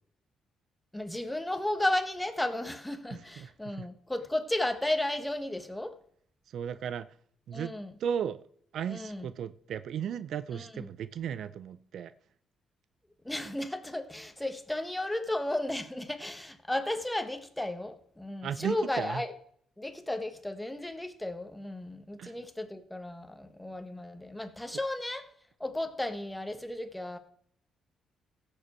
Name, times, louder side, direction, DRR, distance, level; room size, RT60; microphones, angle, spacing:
voice 1, 0.9-6.0 7.5-7.9 8.9-9.3 10.5-10.9 13.2-19.3 19.8-25.3 25.6-27.2, left 1 dB, 10° left, 1.4 m, -34 dB
voice 2, 3.1-3.9 6.5-7.1 7.5-7.7 8.0-8.4 8.7-12.1 18.4-19.2 22.2-22.3, right 8 dB, 70° right, 0.5 m, -35 dB
16.0 x 6.9 x 4.4 m
cardioid pair, 90°, 0 cm